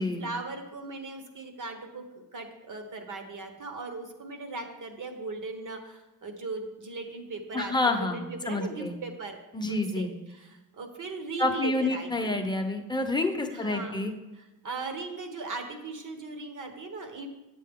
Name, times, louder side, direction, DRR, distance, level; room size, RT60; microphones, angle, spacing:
voice 1, 0.2-9.4 9.7-12.4 13.5-14.0 14.4-17.3, right 3 dB, 60° right, 5 dB, 1.2 m, -38 dB
voice 2, 7.5-8.9 9.5-10.1 11.4-14.1, left 2 dB, 10° left, 4 dB, 0.8 m, -28 dB
9.1 x 7.6 x 3.7 m, 1.1 s
wide cardioid pair, 145°, 36 cm